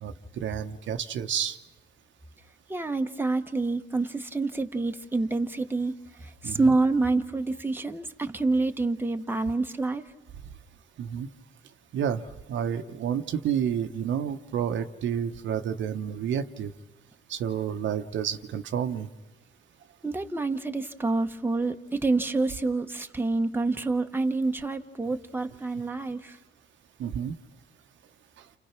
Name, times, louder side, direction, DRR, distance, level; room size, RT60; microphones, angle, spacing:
voice 1, 0.0-1.6 6.4-6.7 11.0-11.3 11.9-12.2 12.5-16.7 17.3-19.1 27.0-27.4, right 8 dB, 70° right, 7 dB, 1.1 m, -30 dB
voice 2, 2.7-5.9 6.2-10.0 20.0-26.4, right 3 dB, 10° right, 5 dB, 1.2 m, -27 dB
29.5 x 29.0 x 6.0 m, 0.99 s
cardioid pair, 90°, 20 cm